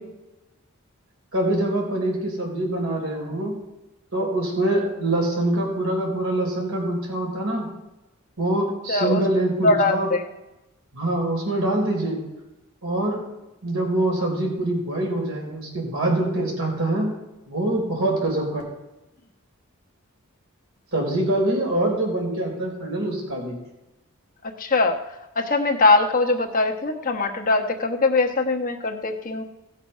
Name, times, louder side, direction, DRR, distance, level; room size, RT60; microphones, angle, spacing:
voice 1, 1.3-3.5 4.1-7.7 8.4-10.1 10.9-12.2 12.8-13.3 13.6-17.1 17.5-18.6 20.9-23.6, right 1 dB, 70° right, -1 dB, 4.1 m, -24 dB
voice 2, 8.9-9.3 9.6-10.2 24.4-25.0 25.3-29.4, left 3 dB, 40° left, 3 dB, 1.2 m, -21 dB
17.0 x 6.4 x 5.5 m, 0.99 s
head